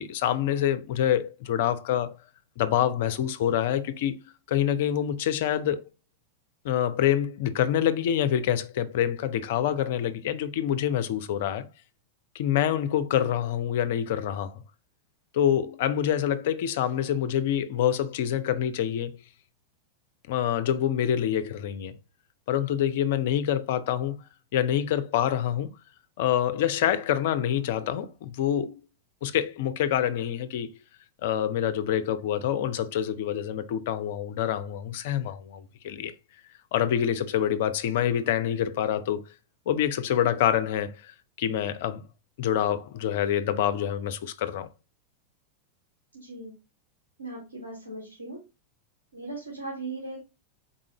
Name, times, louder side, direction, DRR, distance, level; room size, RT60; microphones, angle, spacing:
voice 1, 0.0-2.2 2.6-4.2 4.5-5.8 6.6-11.7 12.3-14.6 15.3-19.2 20.3-22.0 22.5-24.2 24.5-25.7 26.2-28.8 29.2-30.7 31.2-36.1 36.7-39.2 39.7-41.1 41.4-42.0 42.4-44.7, left 10 dB, 55° left, 0.4 m, -26 dB
voice 2, 46.1-46.5 47.2-48.4 49.1-50.2, right 2 dB, 85° right, 1.4 m, -38 dB
4.0 x 3.7 x 2.9 m
figure-of-eight pair, 90°, 0 cm